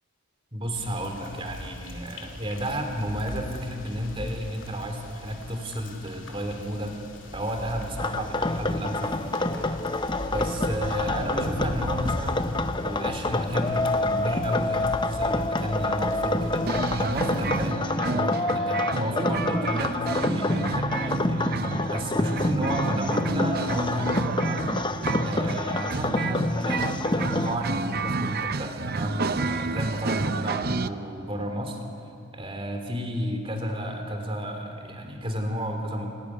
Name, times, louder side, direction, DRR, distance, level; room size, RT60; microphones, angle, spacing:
voice 1, 0.5-6.9 7.3-12.5 12.8-21.4 21.9-24.7 25.2-31.8 32.3-36.1, equal, 25° right, 4 dB, 3.1 m, -32 dB
sound 1, 0.7-17.7, left 1 dB, 60° left, 2.7 m, -38 dB
sound 2, 8.0-27.6, left 2 dB, 20° left, 0.7 m, -27 dB
sound 3, 16.7-30.9, right 3 dB, 45° right, 0.7 m, -30 dB
26.0 x 18.0 x 9.8 m, 2.6 s
head